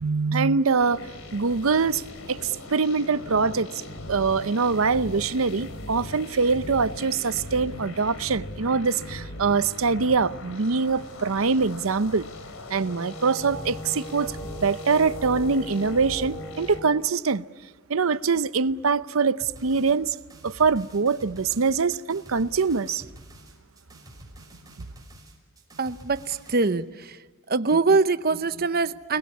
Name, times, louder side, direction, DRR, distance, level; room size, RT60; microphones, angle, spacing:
voice 1, 0.0-2.0 2.3-3.7 4.1-12.3 12.7-17.4 17.9-20.2 20.4-23.0, right 4 dB, 80° right, 0.7 m, -24 dB
sound 1, 0.8-16.8, left 1 dB, 85° left, 3.0 m, -39 dB
Wind instrument woodwind instrument, 12.6-17.1, right 1 dB, 10° left, 1.4 m, -41 dB
sound 2, 19.4-26.7, right 1 dB, 20° right, 6.0 m, -48 dB
voice 2, 25.8-27.2 27.5-29.2, right 4 dB, 50° right, 0.9 m, -23 dB
30.0 x 21.0 x 9.6 m
head